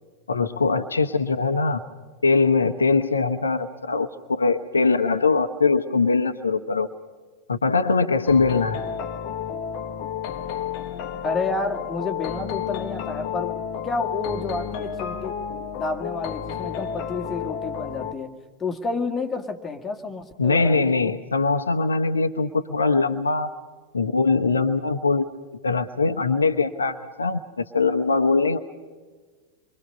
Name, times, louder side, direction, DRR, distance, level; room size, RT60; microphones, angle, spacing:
voice 1, 0.3-1.8 2.2-6.9 7.5-8.8 20.4-23.5 23.9-25.2 25.6-28.6, left 4 dB, 75° left, 8 dB, 1.0 m, -22 dB
sound 1, 8.3-18.1, left 8 dB, 45° left, 1.2 m, -31 dB
voice 2, 11.2-13.6 13.8-15.3 15.7-21.2, left 3 dB, 15° left, 3 dB, 2.0 m, -30 dB
28.0 x 23.5 x 5.5 m, 1.4 s
figure-of-eight pair, 90°, 0 cm